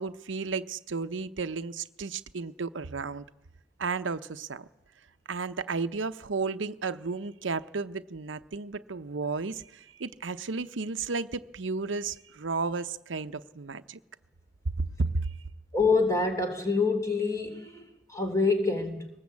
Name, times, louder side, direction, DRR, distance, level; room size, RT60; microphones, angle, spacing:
voice 1, 0.0-3.2 3.8-4.7 5.3-14.0 14.8-14.9 15.1-15.3, right 4 dB, 80° right, 0.8 m, -33 dB
voice 2, 15.7-19.1, left 3 dB, 15° left, 3.1 m, -26 dB
23.0 x 19.5 x 8.4 m
head